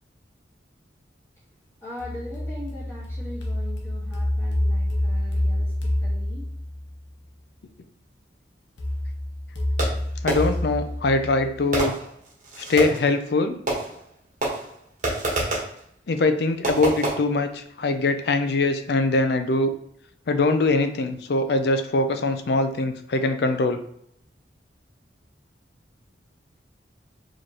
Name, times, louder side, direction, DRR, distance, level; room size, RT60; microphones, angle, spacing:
voice 1, 1.8-6.4, left 1 dB, 15° left, -9 dB, 1.5 m, -40 dB
sound 1, 2.0-7.0 8.8-11.8, left 1 dB, 85° left, 0.8 m, -27 dB
Fireworks, 9.8-10.7 11.7-13.1 13.7-14.1 14.4-15.8 16.6-17.1, right 2 dB, 40° right, 1.2 m, -27 dB
voice 2, 10.2-12.0 12.7-13.6 16.1-19.7 20.3-23.8, left 2 dB, 60° left, 8 dB, 0.4 m, -22 dB
4.8 x 3.0 x 2.9 m, 0.69 s
head